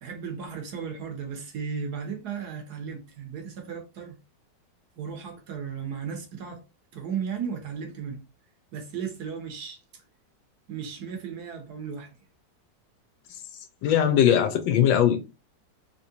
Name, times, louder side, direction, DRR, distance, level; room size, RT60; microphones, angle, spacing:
voice 1, 0.0-4.2 5.0-6.6 6.9-8.2 8.7-9.8 10.7-12.1, right 6 dB, 65° right, 1.1 m, -35 dB
voice 2, 13.8-15.2, left 9 dB, 85° left, 1.3 m, -20 dB
3.6 x 2.9 x 2.6 m
omnidirectional pair, 2.0 m